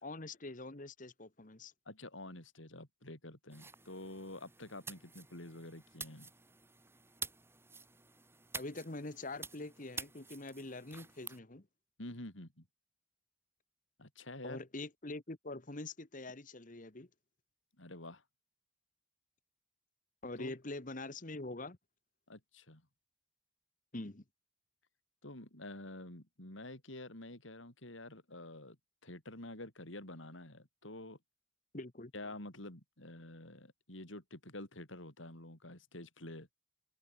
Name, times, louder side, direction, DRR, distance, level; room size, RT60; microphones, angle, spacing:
voice 1, 0.0-1.7 8.5-11.7 14.4-17.1 20.2-21.8 23.9-24.2 31.7-32.1, left 2 dB, 40° left, 1.5 m, -44 dB
voice 2, 1.9-6.3 12.0-12.7 14.0-14.6 17.8-18.2 20.4-20.6 22.3-22.8 25.2-28.8 29.0-31.2 32.1-36.5, left 1 dB, 80° left, 5.5 m, -48 dB
sound 1, 3.5-11.4, right 4 dB, 10° right, 5.1 m, -49 dB
open air
head